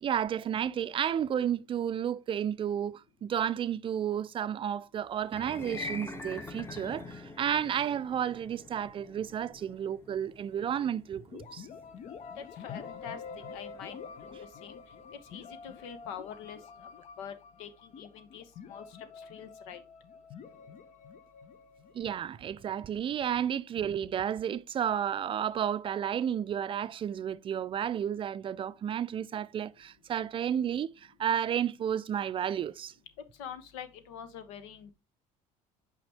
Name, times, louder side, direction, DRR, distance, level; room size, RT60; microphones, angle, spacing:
voice 1, 0.0-11.7 21.9-32.9, right 9 dB, 35° right, 0.4 m, -32 dB
sound 1, 5.2-15.5, left 3 dB, 15° left, 1.0 m, -46 dB
sound 2, 11.3-23.0, left 6 dB, 50° left, 0.7 m, -47 dB
voice 2, 12.4-13.2 13.5-14.0 14.2-14.4 14.6-14.8 15.3-16.9 17.2-17.3 17.6-18.8 19.2-19.8 33.4-34.9, left 8 dB, 90° left, 0.9 m, -45 dB
6.0 x 5.0 x 3.3 m
supercardioid pair, 95°, 15 cm